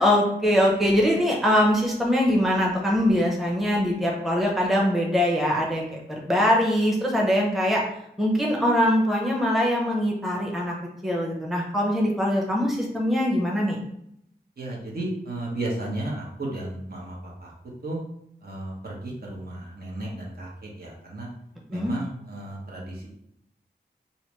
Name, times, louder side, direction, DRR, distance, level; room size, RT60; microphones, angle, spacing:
voice 1, 0.0-7.8 8.2-10.7 11.0-13.8 21.7-21.9, equal, ahead, -2 dB, 0.8 m, -22 dB
voice 2, 14.6-17.5 17.8-18.0 18.4-21.3 21.7-23.1, right 1 dB, 60° right, -3 dB, 1.1 m, -34 dB
3.2 x 2.7 x 3.1 m, 0.75 s
wide cardioid pair, 65°, 18 cm